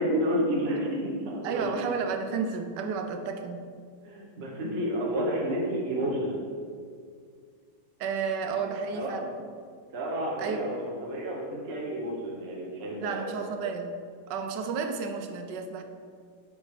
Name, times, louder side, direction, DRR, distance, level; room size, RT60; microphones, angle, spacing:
voice 1, 0.0-1.9 4.0-6.4 8.5-8.6 8.9-9.3 9.9-13.3, equal, 40° right, -4 dB, 1.2 m, -30 dB
voice 2, 1.4-3.6 8.0-9.2 10.4-10.6 13.0-14.0 14.3-15.8, right 5 dB, 90° right, 6 dB, 1.3 m, -32 dB
5.3 x 5.1 x 4.8 m, 2.1 s
omnidirectional pair, 1.8 m